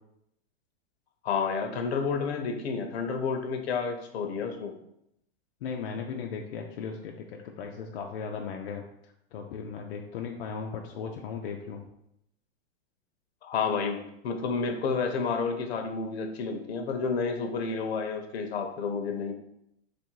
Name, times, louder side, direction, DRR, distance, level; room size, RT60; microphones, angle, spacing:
voice 1, 1.2-4.7 13.4-19.3, left 5 dB, 80° left, 5 dB, 0.8 m, -30 dB
voice 2, 5.6-11.8, left 6 dB, 60° left, 1 dB, 0.5 m, -37 dB
3.2 x 2.6 x 4.5 m, 0.78 s
supercardioid pair, 170°, 31 cm